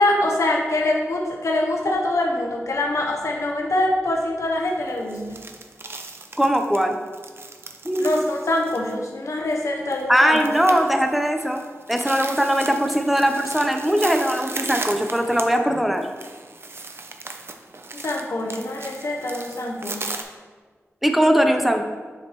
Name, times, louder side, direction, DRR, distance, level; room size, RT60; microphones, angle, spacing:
voice 1, 0.0-5.4 8.0-10.4 17.9-20.1, left 1 dB, 75° left, -1 dB, 0.8 m, -24 dB
sound 1, 4.7-20.2, right 3 dB, 50° right, 0.5 m, -37 dB
voice 2, 6.4-7.0 7.8-8.1 10.1-16.1 21.0-21.8, equal, 5° right, 5 dB, 0.6 m, -20 dB
7.0 x 5.3 x 3.0 m, 1.5 s
wide cardioid pair, 70°, 5 cm